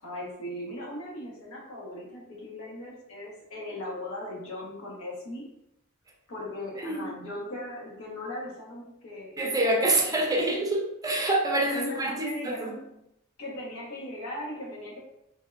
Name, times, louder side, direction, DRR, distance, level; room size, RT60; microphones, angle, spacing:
voice 1, 0.0-5.5 6.3-10.1 11.7-12.8 13.4-15.0, left 1 dB, 85° left, -3 dB, 0.9 m, -38 dB
voice 2, 9.4-12.7, right 2 dB, 15° right, -1 dB, 0.4 m, -26 dB
3.4 x 2.1 x 2.2 m, 0.83 s
head